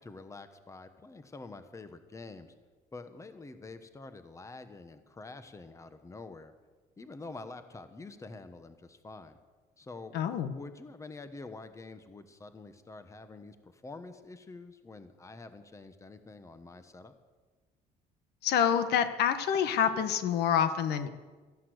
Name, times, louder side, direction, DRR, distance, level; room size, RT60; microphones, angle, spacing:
voice 1, 0.0-2.5 2.9-6.5 7.0-9.4 9.8-10.1 10.5-17.1, left 3 dB, 20° left, 9 dB, 1.2 m, -47 dB
voice 2, 10.1-10.5 18.4-21.1, left 8 dB, 75° left, 10 dB, 1.2 m, -27 dB
14.0 x 11.0 x 8.0 m, 1.3 s
cardioid pair, 110°, 17 cm